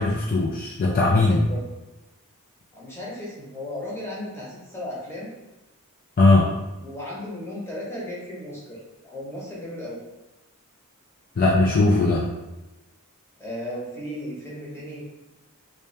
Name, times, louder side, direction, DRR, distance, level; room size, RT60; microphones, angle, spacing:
voice 1, 0.0-1.5 6.2-6.5 11.4-12.3, left 2 dB, 40° left, -3 dB, 0.4 m, -19 dB
voice 2, 0.9-1.7 2.7-5.3 6.3-10.0 13.4-15.0, left 1 dB, 10° left, -6 dB, 1.0 m, -35 dB
3.3 x 2.8 x 3.2 m, 1.0 s
head